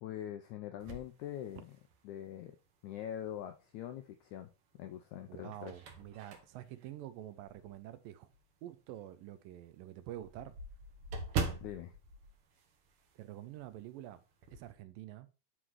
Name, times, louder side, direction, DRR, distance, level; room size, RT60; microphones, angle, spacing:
voice 1, 0.0-1.7 2.0-2.5 2.8-4.5 4.8-5.7 11.6-11.9, left 11 dB, 80° left, 1.8 m, -43 dB
sound 1, 0.8-2.1 2.7-2.8 4.2-4.8 5.2-7.9 8.3-8.4 8.8-8.9 9.2-9.3 9.5-13.3 13.6-13.8 14.1-14.7, right 4 dB, 65° right, 1.4 m, -42 dB
voice 2, 5.3-8.3 8.6-10.6 13.2-14.2 14.5-15.3, right 13 dB, 80° right, 2.3 m, -47 dB
10.0 x 3.7 x 4.7 m
omnidirectional pair, 4.1 m